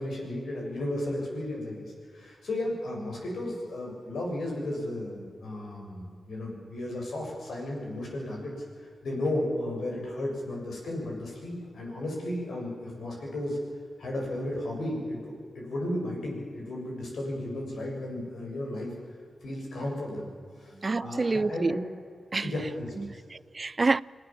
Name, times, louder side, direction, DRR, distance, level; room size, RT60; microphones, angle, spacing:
voice 1, 0.0-8.5 9.0-13.6 14.0-18.9 19.4-20.3 20.6-20.7 21.0-21.8 22.4-23.1, left 1 dB, 80° left, 7.1 m, -34 dB
voice 2, 20.8-21.8 22.3-22.5 23.0-24.0, right 3 dB, 40° right, 0.5 m, -27 dB
26.5 x 16.5 x 7.5 m
cardioid pair, 55°, 0 cm